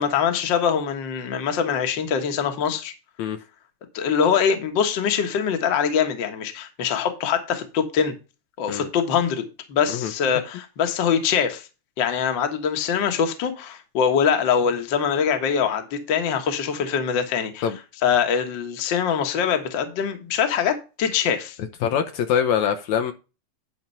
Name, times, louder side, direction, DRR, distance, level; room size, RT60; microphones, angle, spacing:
voice 1, 0.0-2.9 3.9-8.1 8.6-11.7 12.0-17.6 18.0-21.6, left 7 dB, 50° left, 1.7 m, -23 dB
voice 2, 21.8-23.1, left 8 dB, 75° left, 2.1 m, -23 dB
10.5 x 4.4 x 5.4 m
omnidirectional pair, 3.5 m